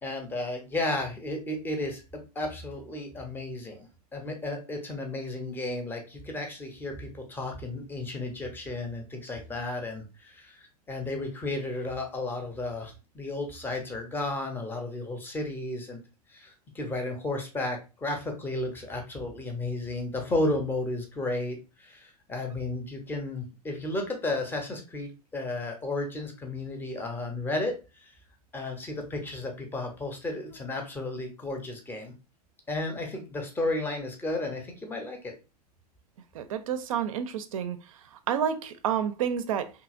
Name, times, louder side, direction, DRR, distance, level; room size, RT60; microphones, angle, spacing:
voice 1, 0.0-16.0 16.3-27.8 28.0-28.1 28.5-32.1 32.7-35.3, left 2 dB, 10° left, 0.6 m, -33 dB
voice 2, 36.3-37.8 38.1-39.7, right 8 dB, 55° right, 0.4 m, -29 dB
2.8 x 2.7 x 2.4 m
figure-of-eight pair, 95°, 21 cm